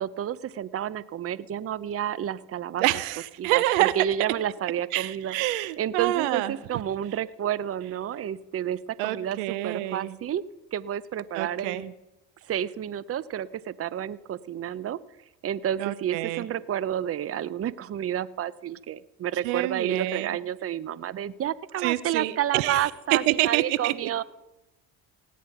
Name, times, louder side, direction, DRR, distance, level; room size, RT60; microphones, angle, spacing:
voice 1, 0.0-2.8 3.4-5.4 5.8-10.4 10.7-11.9 12.4-15.0 15.4-24.2, right 10 dB, 40° right, 19 dB, 0.7 m, -30 dB
voice 2, 2.8-3.9 4.9-6.6 9.0-10.2 11.3-11.8 15.8-16.5 19.4-20.4 21.8-23.9, right 17 dB, 90° right, 17 dB, 0.8 m, -27 dB
18.0 x 9.5 x 5.8 m, 0.99 s
supercardioid pair, 75°, 37 cm